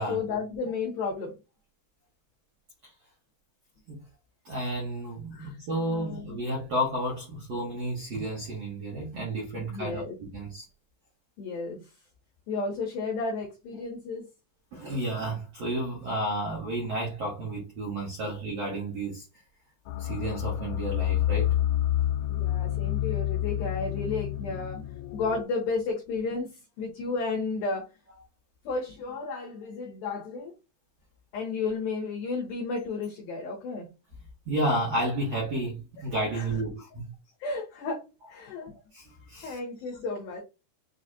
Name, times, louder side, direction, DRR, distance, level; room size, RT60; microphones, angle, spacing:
voice 1, 0.1-1.3 5.3-6.4 9.6-10.2 11.4-11.8 12.5-14.2 22.3-27.9 28.6-30.5 31.3-33.9 36.3-36.4 37.4-38.0 38.3-38.8 39.4-40.4, left 4 dB, 70° left, 2.4 m, -33 dB
voice 2, 4.4-10.0 10.3-10.6 14.7-19.2 20.0-21.5 34.5-37.1 38.9-39.6, right 1 dB, 80° right, 1.4 m, -31 dB
sound 1, 19.9-25.4, left 13 dB, 85° left, 2.8 m, -28 dB
7.1 x 2.4 x 2.7 m
omnidirectional pair, 5.4 m